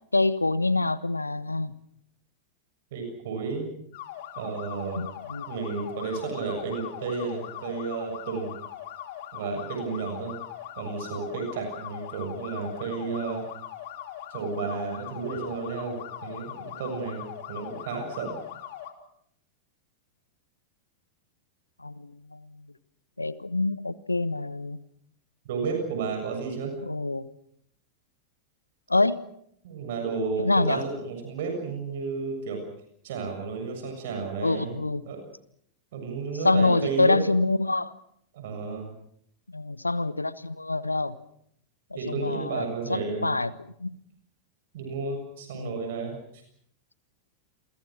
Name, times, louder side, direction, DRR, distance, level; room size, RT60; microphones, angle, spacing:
voice 1, 0.1-1.7 5.0-5.4 21.8-22.5 23.2-24.8 26.8-27.3 28.9-29.2 30.4-30.8 34.4-35.0 36.4-37.9 39.5-41.2 42.1-43.5 43.8-43.9 45.5-45.8, left 2 dB, 80° left, 17 dB, 1.1 m, -26 dB
voice 2, 2.9-3.7 4.4-5.0 5.5-8.5 9.3-10.3 10.8-13.4 14.3-18.4 25.5-26.7 29.6-32.6 33.0-35.2 35.9-37.2 38.3-38.9 42.0-43.3 44.7-46.2, right 4 dB, 55° right, 4 dB, 7.0 m, -32 dB
sound 1, 3.9-18.9, left 11 dB, 50° left, 3.2 m, -40 dB
29.0 x 23.0 x 6.2 m, 0.70 s
figure-of-eight pair, 90°, 0 cm